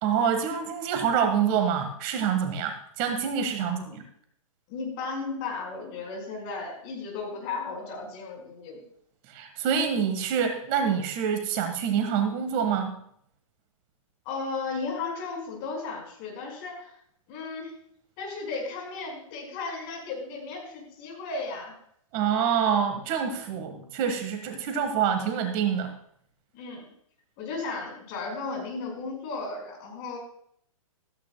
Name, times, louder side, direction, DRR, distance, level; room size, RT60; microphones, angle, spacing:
voice 1, 0.0-4.0 9.3-12.9 22.1-25.9, right 7 dB, 35° right, 6 dB, 1.7 m, -26 dB
voice 2, 3.6-4.0 4.7-8.8 14.2-16.9 17.3-17.7 18.2-21.7 26.5-26.8 27.4-30.2, left 4 dB, 40° left, 1 dB, 5.1 m, -35 dB
15.5 x 14.5 x 2.3 m, 0.66 s
hypercardioid pair, 140°, 18 cm